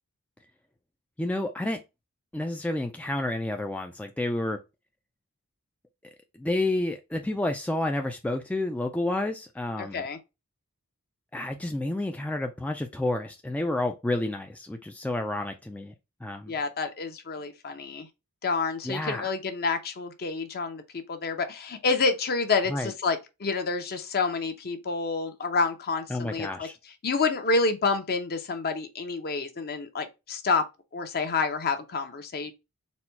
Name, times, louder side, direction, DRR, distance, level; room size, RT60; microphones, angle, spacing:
voice 1, 1.2-1.8 2.3-4.6 6.4-10.0 11.3-15.9 16.2-16.5 18.8-19.3 22.7-22.9 26.1-26.7, left 2 dB, 5° left, 0.3 m, -30 dB
voice 2, 9.8-10.2 16.5-18.1 18.4-26.7 27.0-30.6 30.9-32.5, left 4 dB, 45° left, 0.7 m, -28 dB
4.1 x 2.3 x 4.4 m
head